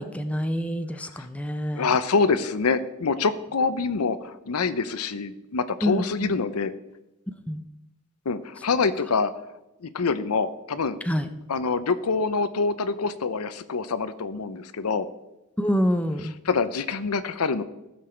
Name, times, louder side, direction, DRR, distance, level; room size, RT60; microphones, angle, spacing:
voice 1, 0.0-1.9 5.8-6.3 7.5-7.6 11.0-11.3 15.6-16.3, equal, 5° left, 8 dB, 0.6 m, -26 dB
voice 2, 1.7-6.7 8.3-9.3 9.8-11.0 11.5-15.1 16.5-17.6, left 4 dB, 85° left, 13 dB, 0.7 m, -25 dB
15.5 x 6.9 x 4.4 m, 0.96 s
head